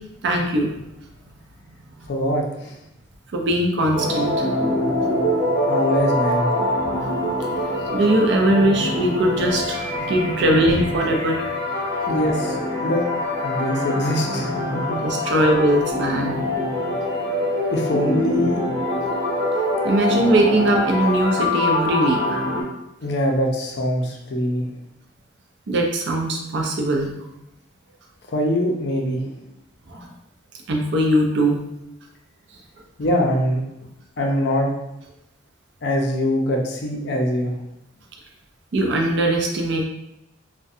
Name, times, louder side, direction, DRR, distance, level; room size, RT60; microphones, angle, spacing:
voice 1, 0.2-0.7 3.3-4.3 7.9-11.4 15.0-16.4 19.8-22.4 25.7-27.1 29.9-30.1 30.7-31.6 38.7-39.8, right 1 dB, 60° right, 1 dB, 0.4 m, -20 dB
voice 2, 2.1-2.7 5.7-6.5 12.1-12.6 12.8-13.0 13.4-15.0 17.7-18.6 23.0-24.7 28.3-29.4 33.0-33.6 34.2-34.7 35.8-37.6, equal, 55° left, 0 dB, 0.4 m, -23 dB
sound 1, 3.9-22.6, left 1 dB, 25° left, 1.0 m, -24 dB
2.4 x 2.1 x 2.6 m, 0.86 s
head